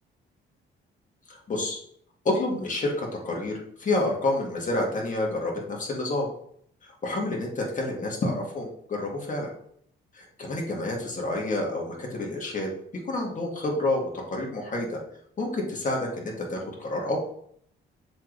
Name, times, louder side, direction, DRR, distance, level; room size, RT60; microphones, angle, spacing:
voice 1, 1.3-1.8 2.2-6.3 6.8-9.5 10.1-12.7 13.1-15.0 15.4-17.2, left 2 dB, 40° left, -1 dB, 2.0 m, -29 dB
7.2 x 4.0 x 3.3 m, 0.66 s
cardioid pair, 90°, 20 cm